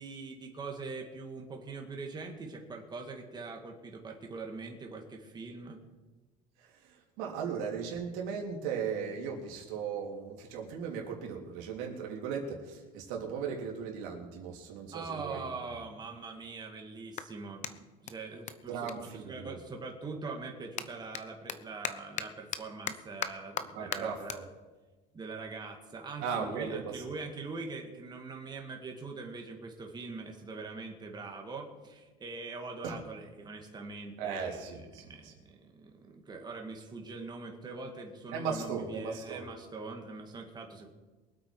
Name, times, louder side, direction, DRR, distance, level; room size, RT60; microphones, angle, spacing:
voice 1, 0.0-5.8 14.9-18.9 19.1-24.5 25.1-40.9, right 3 dB, 20° right, 2 dB, 2.1 m, -43 dB
voice 2, 6.6-15.4 18.7-19.6 23.7-24.4 26.2-27.0 32.8-33.0 34.2-35.3 38.3-39.4, right 6 dB, 80° right, 0 dB, 3.3 m, -37 dB
Clapping, 16.3-19.9 20.2-26.8, left 9 dB, 40° left, 0.8 m, -42 dB
23.0 x 8.5 x 4.8 m, 1.2 s
cardioid pair, 135°, 19 cm